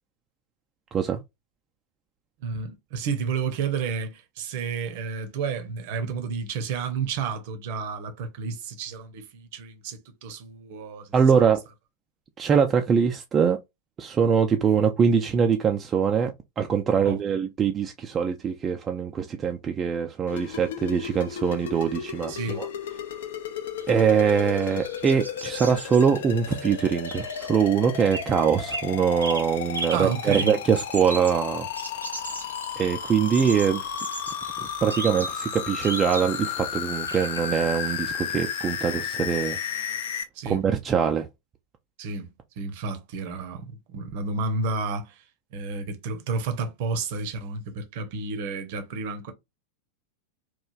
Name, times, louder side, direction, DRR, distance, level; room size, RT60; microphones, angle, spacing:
voice 1, 2.4-11.4 17.0-17.2 22.3-22.6 29.9-30.5 40.3-40.6 42.0-45.2 45.5-49.3, right 4 dB, 50° right, 0.7 m, -31 dB
voice 2, 11.1-11.6 12.4-13.6 14.0-22.7 23.9-31.7 32.8-33.9 34.6-39.6 40.5-41.3, right 7 dB, 25° right, 0.3 m, -23 dB
sound 1, 20.3-40.2, left 8 dB, 60° left, 0.5 m, -33 dB
sound 2, 23.8-28.3 28.6-28.9 29.2-36.6 37.1-37.4, right 2 dB, 85° right, 0.5 m, -37 dB
3.0 x 2.3 x 2.3 m
figure-of-eight pair, 90°, 0 cm